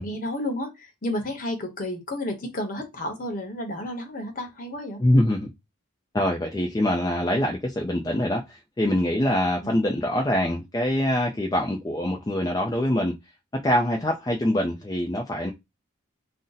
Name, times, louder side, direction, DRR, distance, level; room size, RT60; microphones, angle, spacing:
voice 1, 0.0-5.0 9.6-9.8, left 1 dB, 45° left, 0.8 m, -31 dB
voice 2, 5.0-5.5 6.1-13.1 13.5-15.5, left 1 dB, 20° left, 0.3 m, -24 dB
2.6 x 2.0 x 3.9 m
head